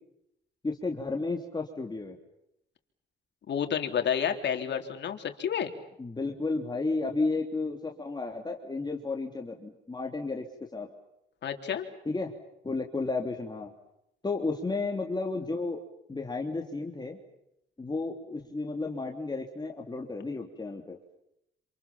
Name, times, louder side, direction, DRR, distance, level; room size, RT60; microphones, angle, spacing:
voice 1, 0.6-2.2 6.0-10.4 10.7-10.9 12.0-12.3 12.6-13.7 14.2-15.8 16.1-17.2 17.8-21.0, left 3 dB, 20° left, 2 dB, 3.2 m, -32 dB
voice 2, 3.5-5.7 11.4-11.8, left 8 dB, 60° left, 5 dB, 3.8 m, -30 dB
28.0 x 27.5 x 7.3 m, 0.81 s
cardioid pair, 90°, 20 cm